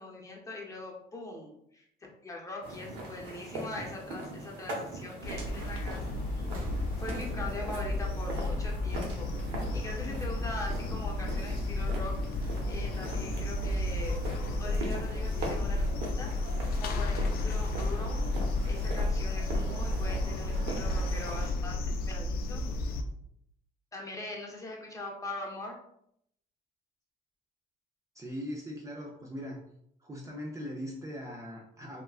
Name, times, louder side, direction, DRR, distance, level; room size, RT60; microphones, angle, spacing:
voice 1, 0.0-1.8 2.2-6.0 6.4-6.5 7.0-9.3 9.7-12.2 12.7-14.2 14.6-15.9 16.2-16.3 16.8-18.2 18.7-21.8 22.1-22.6 23.9-25.8, left 2 dB, 20° left, -2 dB, 0.8 m, -41 dB
sound 1, 2.6-21.5, right 2 dB, 90° right, 0.8 m, -41 dB
summer evening in town, 5.2-23.0, left 2 dB, 65° left, 0.4 m, -32 dB
sound 2, 6.4-9.2 10.3-10.4, right 4 dB, 55° right, 1.1 m, -48 dB
voice 2, 28.1-29.6 30.0-32.0, equal, 20° right, -2 dB, 0.5 m, -40 dB
3.5 x 2.3 x 2.4 m, 0.72 s
cardioid pair, 110°, 17 cm